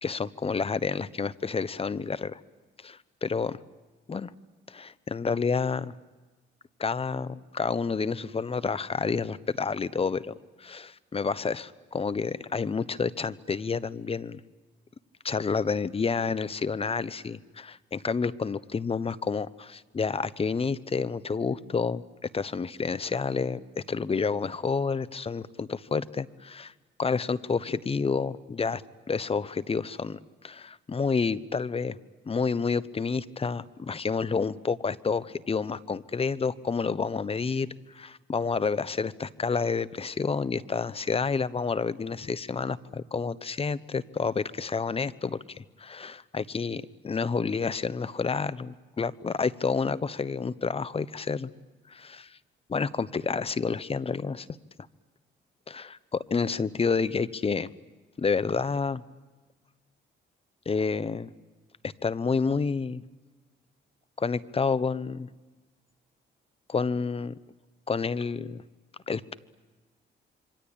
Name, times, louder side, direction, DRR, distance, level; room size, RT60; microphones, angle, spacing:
voice 1, 0.0-2.4 2.8-3.6 4.1-4.3 4.7-5.9 6.8-14.4 15.2-22.0 22.3-26.7 27.0-28.8 29.1-30.2 30.4-32.0 32.3-37.7 37.9-51.5 51.9-52.3 52.7-54.5 55.7-57.7 58.2-59.0 60.7-61.3 61.8-63.0 64.2-65.3 66.7-67.3 67.9-68.6 69.1-69.4, left 5 dB, 30° left, 17 dB, 0.9 m, -29 dB
27.0 x 24.5 x 8.8 m, 1.3 s
cardioid pair, 90°, 20 cm